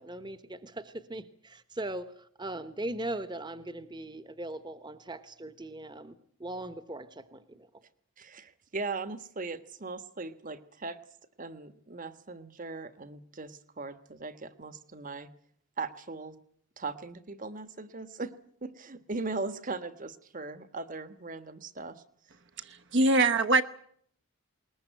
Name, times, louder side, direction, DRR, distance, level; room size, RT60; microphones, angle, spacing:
voice 1, 0.0-7.7, right 1 dB, 20° right, 12 dB, 1.1 m, -39 dB
voice 2, 8.2-11.0 11.4-15.3 15.8-16.4 16.8-18.3 18.6-21.9, right 3 dB, 40° right, 12 dB, 1.4 m, -39 dB
voice 3, 22.7-23.6, right 2 dB, 55° right, 10 dB, 1.0 m, -23 dB
21.0 x 20.0 x 9.1 m, 0.64 s
head